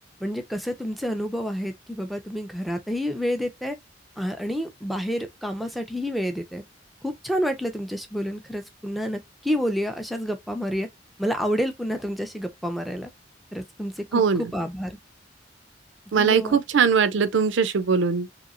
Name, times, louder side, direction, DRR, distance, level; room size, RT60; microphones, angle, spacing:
voice 1, 0.2-3.8 4.2-6.6 7.0-10.9 11.2-13.1 13.5-14.2 14.5-15.0 16.1-16.6, equal, ahead, 0.4 m, -29 dB
voice 2, 14.1-14.5 16.1-18.3, right 6 dB, 75° right, 0.4 m, -21 dB
2.9 x 2.8 x 2.4 m
head